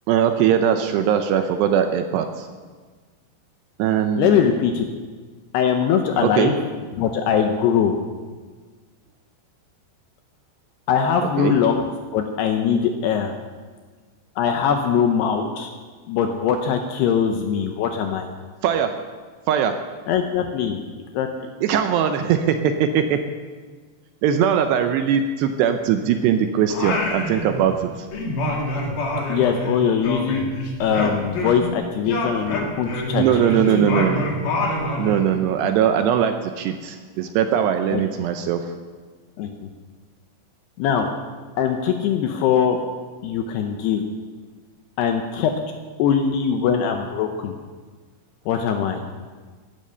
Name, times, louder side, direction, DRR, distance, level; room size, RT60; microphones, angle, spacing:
voice 1, 0.1-2.5 3.8-4.4 6.2-6.5 11.4-11.6 18.6-18.9 19.5-19.8 21.6-23.2 24.2-28.1 33.1-34.2 35.0-38.7, right 9 dB, 80° right, 7 dB, 2.6 m, -20 dB
voice 2, 4.2-4.9 5.5-6.5 6.9-8.0 10.9-13.3 14.4-15.7 16.1-18.3 20.1-20.8 21.1-21.3 29.3-30.5 30.8-33.8 37.9-38.0 39.4-39.7 40.8-41.1 41.6-42.8 43.2-44.0 45.0-45.5 46.0-47.5 48.5-49.0, left 7 dB, 75° left, 5 dB, 2.6 m, -21 dB
Singing, 26.7-27.8 28.1-31.7 32.0-35.3, left 1 dB, 50° left, 3.2 m, -26 dB
16.5 x 11.0 x 6.8 m, 1.4 s
omnidirectional pair, 5.4 m